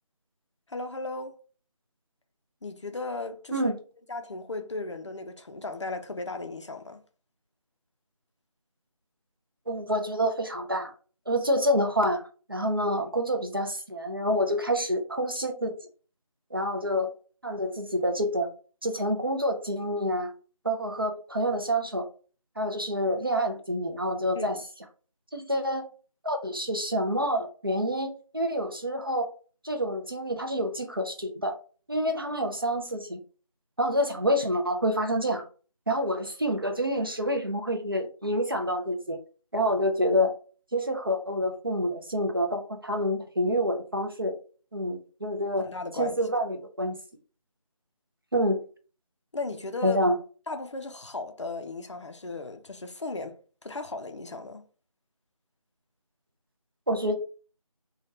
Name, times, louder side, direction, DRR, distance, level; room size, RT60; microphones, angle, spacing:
voice 1, 0.7-1.4 2.6-3.7 4.1-7.0 24.3-24.6 45.6-46.2 49.3-50.0 50.5-54.7, left 3 dB, 55° left, 0.4 m, -36 dB
voice 2, 9.7-10.9 11.3-12.2 12.5-15.7 16.5-17.1 17.4-18.5 18.8-20.3 20.6-22.0 22.6-24.6 25.3-25.8 26.2-29.3 29.6-31.6 31.9-33.2 33.8-35.4 35.9-39.2 39.5-40.3 40.7-44.3 44.7-45.7 46.0-47.0 48.3-48.6 49.8-50.2 56.9-57.2, equal, 40° right, 0.4 m, -27 dB
3.2 x 2.2 x 2.6 m
figure-of-eight pair, 170°, 19 cm